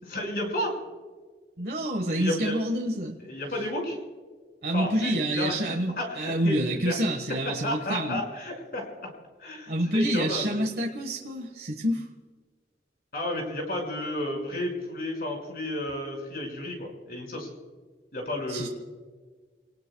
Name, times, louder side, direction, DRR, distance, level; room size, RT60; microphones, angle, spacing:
voice 1, 0.1-0.8 2.2-2.6 3.2-4.0 4.7-6.6 6.8-7.0 7.5-9.1 9.4-10.6 13.1-17.5 18.1-18.7, left 1 dB, 55° left, 1 dB, 5.6 m, -32 dB
voice 2, 1.6-3.2 4.6-8.2 9.7-12.0 18.5-18.7, right 1 dB, 60° right, 1 dB, 1.4 m, -28 dB
29.0 x 19.5 x 2.3 m, 1.5 s
head